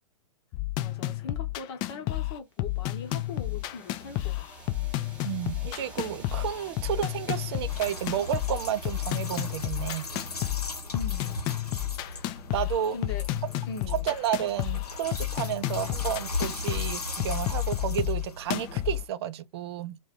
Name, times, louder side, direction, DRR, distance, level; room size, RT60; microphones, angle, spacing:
sound 1, 0.5-19.0, left 17 dB, 25° left, 0.3 m, -31 dB
voice 1, 0.8-4.4 10.9-11.5 12.9-13.2 13.7-14.1, left 4 dB, 45° left, 1.0 m, -40 dB
sound 2, 2.6-11.3, right 2 dB, 5° right, 0.9 m, -49 dB
voice 2, 5.2-10.0 12.5-13.0 13.9-20.0, right 10 dB, 45° right, 0.4 m, -31 dB
sound 3, 7.7-19.1, left 2 dB, 85° left, 0.8 m, -38 dB
2.8 x 2.2 x 3.6 m
figure-of-eight pair, 115°, 19 cm